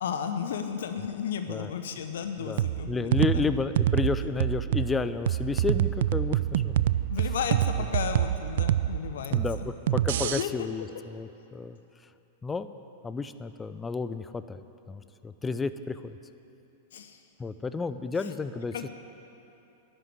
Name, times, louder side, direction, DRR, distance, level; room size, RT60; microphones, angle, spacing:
voice 1, 0.0-3.5 7.1-9.4 10.2-10.7 16.9-17.2 18.2-18.3 18.7-18.9, left 7 dB, 65° left, 7 dB, 0.7 m, -34 dB
voice 2, 2.4-6.8 9.3-11.8 12.4-12.7 13.0-14.6 14.9-16.2 17.4-18.9, left 4 dB, 15° left, 12 dB, 0.5 m, -32 dB
sound 1, 2.6-10.4, right 12 dB, 60° right, 0.3 m, -26 dB
11.0 x 7.8 x 9.8 m, 2.8 s
figure-of-eight pair, 100°, 0 cm